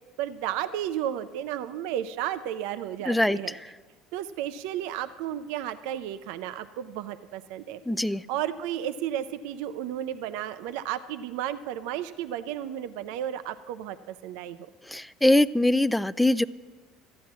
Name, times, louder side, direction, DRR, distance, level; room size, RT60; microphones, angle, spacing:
voice 1, 0.2-3.6 4.1-14.7, right 11 dB, 75° right, 12 dB, 0.4 m, -33 dB
voice 2, 3.1-3.4 7.9-8.2 14.9-16.4, left 1 dB, 5° left, 17 dB, 0.3 m, -22 dB
13.5 x 9.3 x 6.0 m, 1.3 s
supercardioid pair, 90°, 0 cm